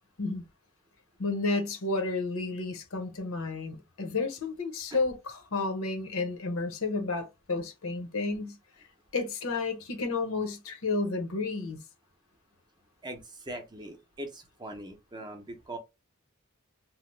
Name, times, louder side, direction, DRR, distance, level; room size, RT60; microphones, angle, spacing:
voice 1, 1.2-8.6 9.1-11.8, left 3 dB, 85° left, 0.8 m, -31 dB
voice 2, 13.0-15.8, right 1 dB, 20° right, 0.5 m, -41 dB
2.8 x 2.0 x 3.1 m
head